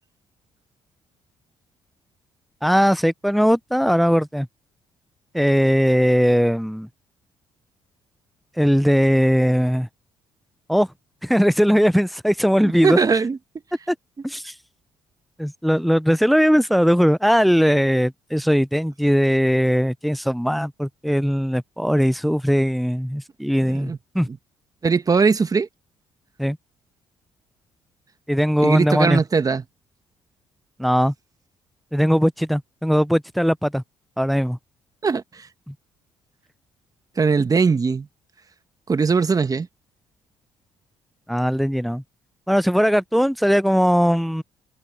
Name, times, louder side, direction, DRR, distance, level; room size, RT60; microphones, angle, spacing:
voice 1, 2.6-4.5 5.3-6.9 8.6-9.9 10.7-10.9 11.2-13.0 13.9-14.0 14.2-14.5 15.4-24.3 26.4-26.6 28.3-29.2 30.8-31.1 31.9-33.8 34.2-34.6 35.7-35.8 41.3-42.0 42.5-44.4, equal, ahead, 0.7 m, -19 dB
voice 2, 12.6-13.4 23.7-24.0 24.8-25.7 28.6-29.6 35.0-35.2 37.2-38.1 38.9-39.7, right 5 dB, 35° right, 1.3 m, -20 dB
supercardioid pair, 60°, 11 cm